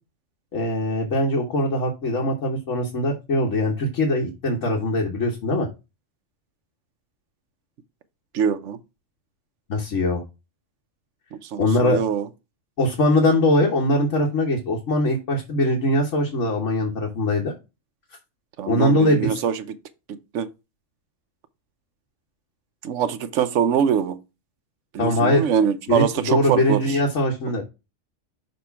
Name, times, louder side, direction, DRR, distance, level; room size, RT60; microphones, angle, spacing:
voice 1, 0.5-5.7 9.7-10.2 11.6-12.0 12.8-17.5 18.6-19.4 25.0-25.5 25.9-27.6, left 1 dB, 85° left, 1.6 m, -21 dB
voice 2, 8.3-8.8 11.3-12.3 18.6-19.7 20.1-20.5 22.8-24.2 24.9-27.0, right 7 dB, 80° right, 1.1 m, -23 dB
6.5 x 3.1 x 5.7 m
omnidirectional pair, 1.2 m